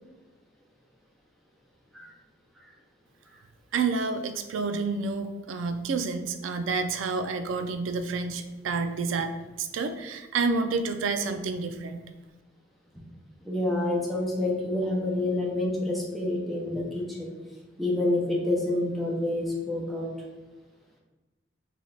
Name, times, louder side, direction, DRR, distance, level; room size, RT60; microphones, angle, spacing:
voice 1, 3.7-12.0, right 4 dB, 85° right, 8 dB, 0.4 m, -29 dB
voice 2, 13.4-17.3 17.8-20.1, left 2 dB, ahead, -3 dB, 0.7 m, -28 dB
3.3 x 3.1 x 3.9 m, 1.2 s
head